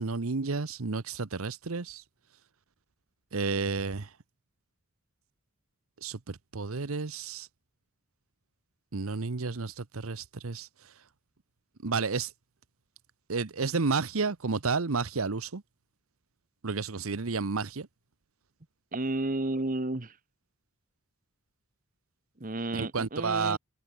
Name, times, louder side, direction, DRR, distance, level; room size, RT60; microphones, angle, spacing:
voice 1, 0.0-2.0 3.3-4.1 6.0-7.5 8.9-10.9 11.8-12.3 13.3-15.6 16.6-17.9 22.7-23.6, right 4 dB, 85° right, 1.0 m, -31 dB
voice 2, 18.9-20.1 22.4-23.6, right 2 dB, 40° right, 1.2 m, -32 dB
head